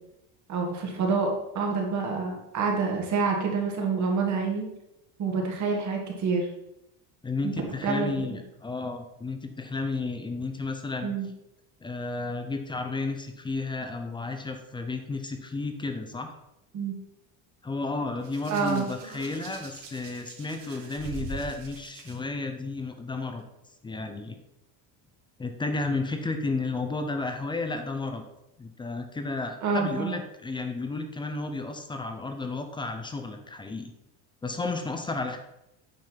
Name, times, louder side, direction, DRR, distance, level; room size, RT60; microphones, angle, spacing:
voice 1, 0.5-4.7 5.2-6.5 7.4-7.5 7.8-8.4 11.0-11.3 16.7-16.9 18.5-18.9 29.6-30.1, right 4 dB, 35° right, 1 dB, 1.9 m, -27 dB
voice 2, 7.2-11.1 11.8-16.3 17.6-23.4 23.8-24.4 25.4-28.2 28.6-33.9 34.4-35.4, left 3 dB, 10° left, 6 dB, 0.5 m, -32 dB
Hands, 18.2-22.1 23.2-23.4, right 4 dB, 55° right, 2.3 m, -42 dB
9.1 x 5.5 x 5.7 m, 0.86 s
cardioid pair, 175°, 48 cm